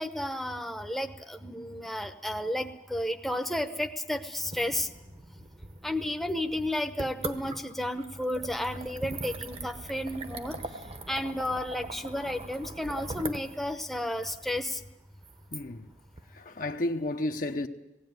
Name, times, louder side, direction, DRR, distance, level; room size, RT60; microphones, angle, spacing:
voice 1, 0.0-4.9 5.8-10.6 11.1-14.8, left 1 dB, ahead, 0.9 m, -32 dB
sound 1, 4.3-16.2, right 2 dB, 35° right, 1.1 m, -42 dB
voice 2, 15.5-15.9 16.3-17.7, left 1 dB, 50° left, 0.9 m, -32 dB
19.0 x 17.0 x 9.5 m
head